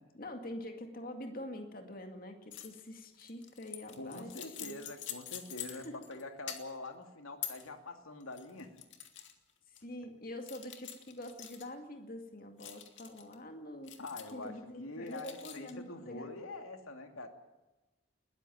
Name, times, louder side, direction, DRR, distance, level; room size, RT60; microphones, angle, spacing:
voice 1, 0.1-4.8 5.7-5.9 9.7-14.0 14.3-16.3, left 1 dB, 45° left, 5 dB, 2.1 m, -45 dB
sound 1, 2.5-2.8 3.1-6.2 6.5-6.9 7.4-7.7 8.2-9.3 9.8-9.9 10.5-11.7 12.6-13.3 13.9-14.5 15.1-15.7, left 10 dB, 60° left, 2.5 m, -45 dB
voice 2, 4.0-8.8 14.0-17.3, left 2 dB, 85° left, 6 dB, 2.6 m, -45 dB
21.0 x 15.0 x 9.3 m, 1.1 s
head